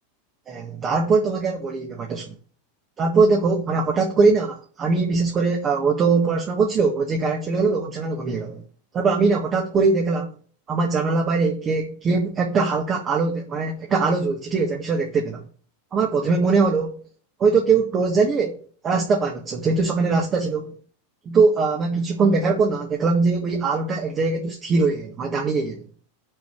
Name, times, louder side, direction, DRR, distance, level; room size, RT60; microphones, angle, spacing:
voice 1, 0.5-2.4 3.0-8.6 8.9-10.3 10.7-15.4 15.9-17.0 17.4-20.7 21.3-25.8, right 4 dB, 25° right, 1.8 m, -21 dB
6.5 x 6.1 x 6.9 m
figure-of-eight pair, 90°, 0 cm